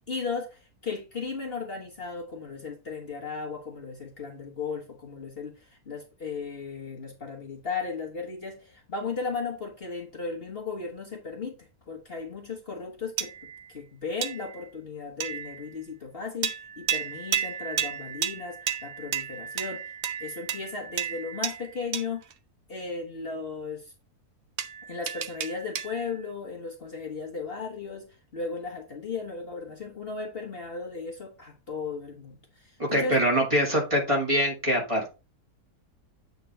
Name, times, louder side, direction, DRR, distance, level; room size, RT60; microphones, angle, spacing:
voice 1, 0.1-11.6 11.9-13.3 13.7-19.8 20.2-22.2 22.7-23.9 24.9-33.2, left 4 dB, 40° left, 1.4 m, -36 dB
sound 1, 13.2-13.7 14.2-14.7 15.2-15.7 16.4-22.3 24.6-26.2, right 8 dB, 55° right, 0.9 m, -33 dB
voice 2, 32.8-35.1, equal, 20° right, 2.0 m, -24 dB
8.3 x 3.8 x 4.4 m
omnidirectional pair, 1.6 m